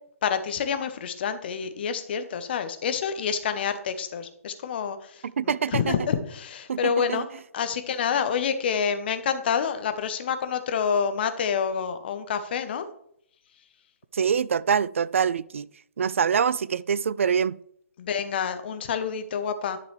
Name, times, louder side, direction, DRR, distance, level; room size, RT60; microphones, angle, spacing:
voice 1, 0.2-7.3 7.5-12.9 18.0-19.8, left 7 dB, 45° left, 1.0 m, -28 dB
voice 2, 5.4-6.0 6.7-7.3 14.1-15.7 16.0-17.5, right 7 dB, 60° right, 0.3 m, -25 dB
10.5 x 6.7 x 3.3 m
figure-of-eight pair, 130°, 8 cm